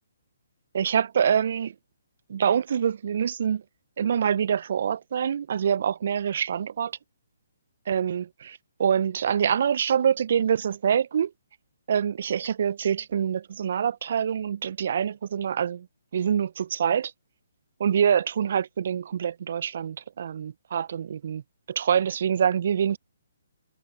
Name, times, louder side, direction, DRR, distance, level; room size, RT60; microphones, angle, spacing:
voice 1, 0.7-1.7 2.3-3.6 4.0-6.9 7.9-11.3 11.9-15.9 16.1-17.1 17.8-21.4 21.7-23.0, right 8 dB, 55° right, 0.8 m, -25 dB
figure-of-eight pair, 135°, 0 cm